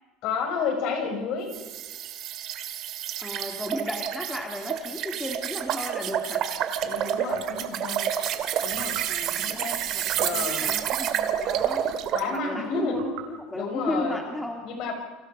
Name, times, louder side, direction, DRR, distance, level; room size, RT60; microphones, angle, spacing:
voice 1, 0.2-1.5 6.8-8.1 8.6-9.0 9.4-9.8 10.2-10.7 12.1-13.0 13.5-14.2 14.6-14.9, left 5 dB, 50° left, 4 dB, 6.4 m, -30 dB
sound 1, 1.5-12.3, right 10 dB, 40° right, 2.1 m, -29 dB
voice 2, 3.2-6.5 9.1-11.9 12.3-14.7, left 1 dB, 5° left, 2 dB, 2.2 m, -35 dB
sound 2, 7.3-7.7 8.7-9.2 10.1-10.5 11.5-11.9 12.9-13.4, right 10 dB, 90° right, 4.6 m, -42 dB
30.0 x 25.5 x 5.3 m, 1.3 s
cardioid pair, 175°, 0 cm